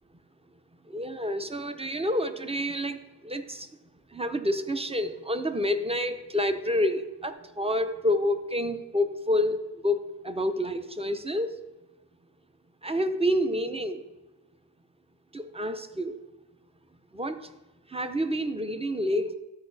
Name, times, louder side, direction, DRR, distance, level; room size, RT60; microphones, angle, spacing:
voice 1, 0.9-3.0 3.2-3.7 4.1-11.6 12.8-14.0 15.3-16.2 17.1-17.5 17.9-19.3, left 1 dB, 15° right, 9 dB, 0.6 m, -28 dB
13.0 x 4.7 x 4.0 m, 1.1 s
wide cardioid pair, 55°, 48 cm